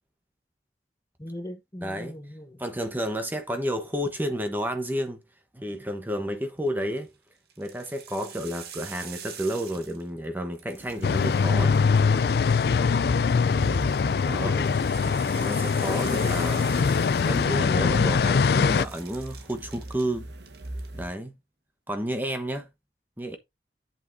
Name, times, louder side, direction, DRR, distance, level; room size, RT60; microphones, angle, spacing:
voice 1, 1.2-2.6 14.4-14.7, equal, 20° left, 1.1 m, -38 dB
voice 2, 1.8-2.2 2.6-5.2 5.5-7.1 7.6-11.8 14.2-14.6 15.3-20.3 20.9-21.3 21.9-22.7 23.2-23.4, equal, 10° right, 1.1 m, -31 dB
sound 1, 6.7-7.0 7.5-10.3 10.5-12.4 13.5-18.1 18.3-20.1 20.4-20.9, right 8 dB, 60° right, 1.6 m, -45 dB
sound 2, 10.8-21.1, right 1 dB, 80° right, 1.2 m, -40 dB
sound 3, 11.0-18.9, left 5 dB, 60° left, 0.3 m, -23 dB
8.3 x 8.0 x 2.7 m
head